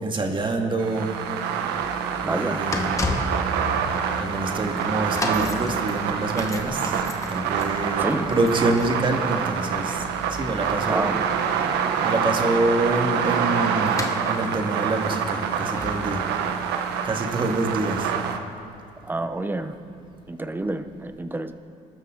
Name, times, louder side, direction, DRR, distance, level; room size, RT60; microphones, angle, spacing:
voice 1, 0.0-1.1 2.2-2.9 4.2-7.0 7.3-10.0 10.3-11.1 11.7-16.2 16.7-18.1, right 2 dB, 30° right, 3 dB, 2.2 m, -26 dB
sound 1, 0.8-18.4, right 7 dB, 85° right, 1.3 m, -26 dB
sound 2, 1.7-18.6 19.3-19.4, left 2 dB, 20° left, 1.5 m, -36 dB
voice 2, 2.2-2.6 8.0-8.3 10.9-11.2 19.0-19.7 20.3-21.5, right 2 dB, 10° right, 9 dB, 1.0 m, -28 dB
27.5 x 13.0 x 4.0 m, 2.5 s
cardioid pair, 110°, 17 cm